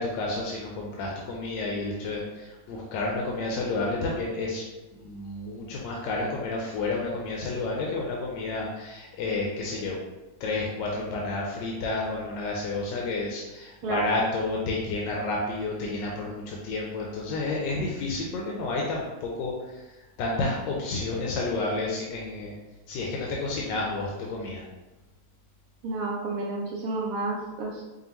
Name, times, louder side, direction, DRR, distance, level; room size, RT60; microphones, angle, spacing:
voice 1, 0.0-4.6 5.0-10.0 10.4-19.9 20.2-22.5 22.9-24.6, left 2 dB, 90° left, -2 dB, 1.3 m, -30 dB
voice 2, 25.8-27.8, right 3 dB, 75° right, -2 dB, 0.8 m, -30 dB
5.1 x 2.4 x 2.9 m, 1.1 s
omnidirectional pair, 1.9 m